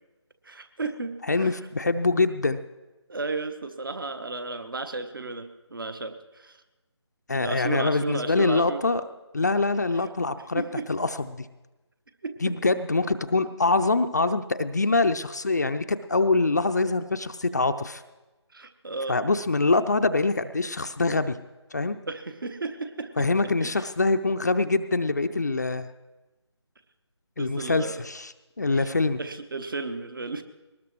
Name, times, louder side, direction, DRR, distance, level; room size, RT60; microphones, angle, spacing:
voice 1, 0.4-1.6 3.1-6.6 7.3-8.8 9.9-10.0 10.5-10.9 12.2-12.3 18.5-19.2 22.1-23.8 27.4-28.0 28.7-28.9 29.2-30.4, right 3 dB, 50° right, 9 dB, 1.2 m, -34 dB
voice 2, 1.3-2.6 7.3-9.0 9.3-10.6 10.9-11.5 12.4-18.0 19.1-21.4 21.7-22.0 23.2-25.9 27.4-29.2, left 3 dB, 35° left, 9 dB, 0.5 m, -24 dB
21.5 x 19.0 x 3.1 m, 1.1 s
figure-of-eight pair, 160°, 15 cm